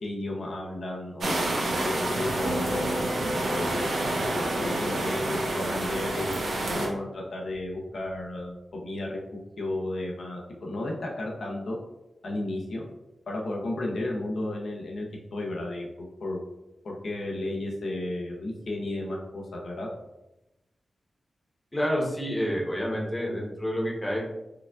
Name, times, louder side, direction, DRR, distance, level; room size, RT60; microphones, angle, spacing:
voice 1, 0.0-3.0 3.5-3.9 4.3-9.2 9.6-11.8 12.2-12.8 13.3-16.4 16.8-19.9, left 1 dB, 70° left, -1 dB, 0.6 m, -33 dB
sound 1, 1.2-6.9, right 1 dB, 85° right, 0.8 m, -28 dB
sound 2, 2.4-6.8 7.1-7.6, equal, 40° right, 0.4 m, -38 dB
voice 2, 21.7-24.2, equal, 20° left, -3 dB, 0.8 m, -28 dB
4.7 x 2.3 x 2.4 m, 0.95 s
wide cardioid pair, 120°, 0 cm